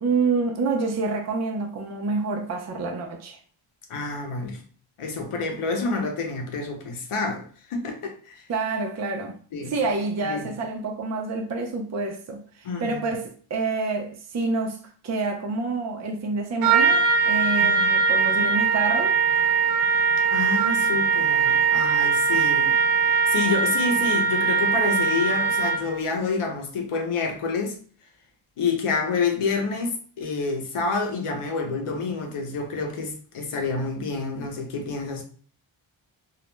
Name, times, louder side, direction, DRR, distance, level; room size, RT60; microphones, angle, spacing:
voice 1, 0.0-3.4 8.5-9.4 9.7-19.2, right 3 dB, 35° right, 0.5 m, -28 dB
voice 2, 3.9-4.6 5.0-8.5 9.5-9.7 10.2-10.5 12.6-13.0 17.6-17.9 20.3-22.7 23.3-27.8 28.6-35.2, left 4 dB, 85° left, 0.7 m, -28 dB
Trumpet, 16.6-26.0, right 5 dB, 80° right, 0.6 m, -21 dB
2.4 x 2.0 x 3.1 m
wide cardioid pair, 105°, 50 cm